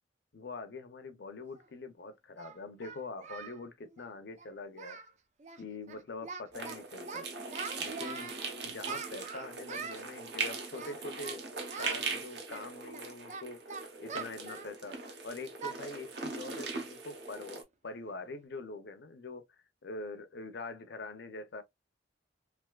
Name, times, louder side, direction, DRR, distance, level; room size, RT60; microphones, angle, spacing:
voice 1, 0.3-5.0 5.6-7.3 7.8-8.4 8.6-11.4 11.8-13.6 14.0-15.0 15.2-21.6, left 3 dB, 60° left, 0.6 m, -44 dB
Singing, 1.6-1.7 2.4-3.6 3.9-4.1 4.4-4.5 4.7-5.1 5.4-5.6 5.9-6.8 7.1-8.4 8.8-10.0 10.7-11.4 11.7-12.0 12.5-15.1 15.6-15.8 16.2-16.3 16.8-16.9 17.3-17.6, right 5 dB, 40° right, 0.5 m, -43 dB
sound 1, 6.5-17.6, right 4 dB, 65° right, 0.8 m, -40 dB
3.4 x 2.6 x 2.3 m
head